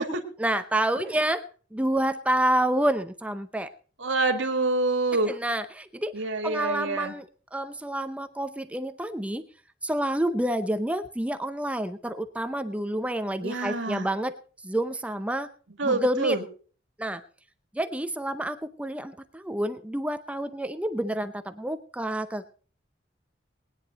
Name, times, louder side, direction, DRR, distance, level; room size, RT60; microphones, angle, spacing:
voice 1, 0.4-1.4 1.7-3.7 5.3-6.1 6.4-9.4 9.8-14.3 14.6-15.5 15.8-16.4 17.0-17.2 17.7-22.5, right 1 dB, 5° right, 10 dB, 0.6 m, -28 dB
voice 2, 4.0-5.3 6.1-7.1 13.4-14.1 15.8-16.4, right 2 dB, 85° right, 6 dB, 1.9 m, -26 dB
20.0 x 10.0 x 4.0 m, 0.40 s
head